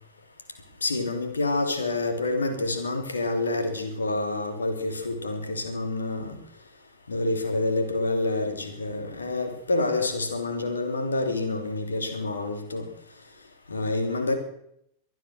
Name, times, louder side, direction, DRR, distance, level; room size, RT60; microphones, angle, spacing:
voice 1, 0.8-6.4 7.1-12.9 13.7-14.3, left 2 dB, 75° left, 5 dB, 3.1 m, -27 dB
24.0 x 9.5 x 6.3 m, 0.74 s
figure-of-eight pair, 90°, 0 cm